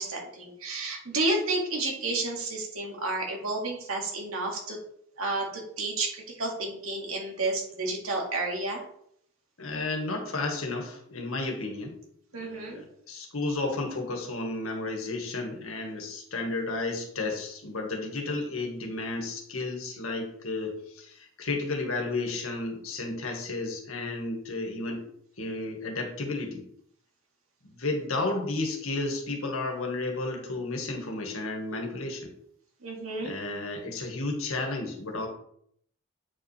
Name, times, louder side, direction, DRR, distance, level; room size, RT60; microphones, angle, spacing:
voice 1, 0.0-4.8 5.2-8.8 12.3-12.8 32.8-33.3, right 2 dB, 85° right, 0 dB, 2.2 m, -31 dB
voice 2, 9.6-12.0 12.4-25.0 25.4-26.6 27.6-32.3 33.2-35.3, left 2 dB, 85° left, 2 dB, 1.7 m, -32 dB
8.3 x 5.3 x 3.4 m, 0.67 s
head